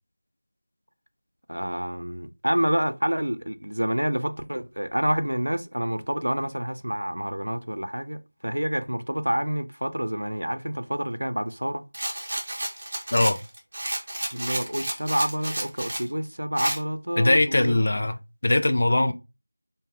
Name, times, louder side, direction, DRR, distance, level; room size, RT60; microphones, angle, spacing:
voice 1, 1.5-11.8 14.3-17.8 18.9-19.1, equal, 90° right, 0.5 m, -28 dB
Rattle, 11.9-16.1 16.6-16.8, right 1 dB, 30° right, 0.8 m, -31 dB
voice 2, 17.2-18.2 18.4-19.1, left 2 dB, 45° left, 0.4 m, -21 dB
3.3 x 2.3 x 3.4 m
figure-of-eight pair, 175°, 0 cm